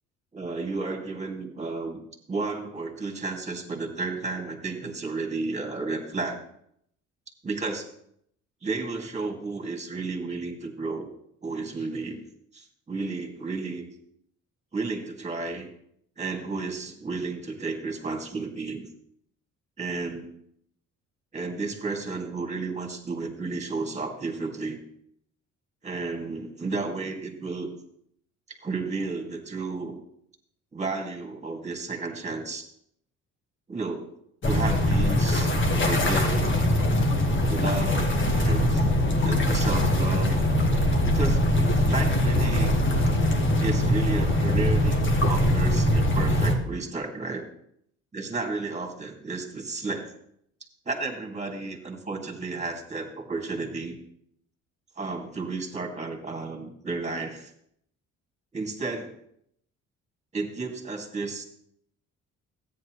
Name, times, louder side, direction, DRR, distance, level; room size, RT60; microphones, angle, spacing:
voice 1, 0.3-2.0 2.3-6.4 7.4-7.9 8.6-11.1 11.4-12.2 12.5-13.9 14.7-15.7 16.2-18.9 19.8-20.3 21.3-24.8 25.8-27.7 28.5-30.0 30.7-32.7 33.7-34.1 34.4-36.7 37.5-38.9 39.2-40.5 41.0-41.6 41.8-42.7 43.6-47.5 48.1-50.1 50.9-54.0 55.0-57.5 58.5-59.1 60.3-61.4, right 3 dB, 20° right, 2 dB, 2.2 m, -32 dB
sound 1, 34.4-46.5, left 1 dB, 40° left, 1.7 m, -22 dB
13.5 x 9.6 x 3.2 m, 0.71 s
cardioid pair, 90°, 30 cm